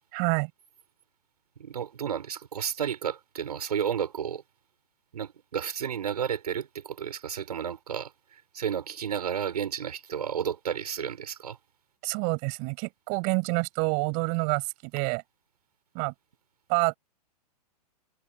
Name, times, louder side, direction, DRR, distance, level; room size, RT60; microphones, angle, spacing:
voice 1, 0.1-0.5 12.0-15.2 15.9-16.1 16.7-17.0, right 37 dB, 40° right, 6.9 m, -27 dB
voice 2, 1.6-4.4 5.1-11.6, right 8 dB, 70° right, 6.8 m, -32 dB
figure-of-eight pair, 105°, 21 cm